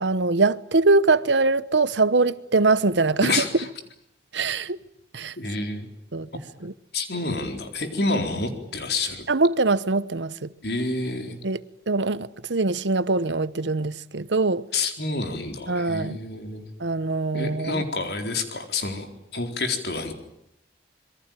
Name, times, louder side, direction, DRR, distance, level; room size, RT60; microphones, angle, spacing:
voice 1, 0.0-3.4 4.3-4.8 5.1-5.3 6.1-6.3 6.6-6.7 9.3-10.5 11.4-11.6 11.9-14.6 15.7-16.2 16.8-17.8, right 3 dB, 85° right, 1.0 m, -22 dB
voice 2, 3.2-3.7 5.4-5.9 6.9-9.3 10.6-11.4 14.7-16.7 17.3-20.1, left 3 dB, 65° left, 4.2 m, -28 dB
26.5 x 22.5 x 9.2 m
head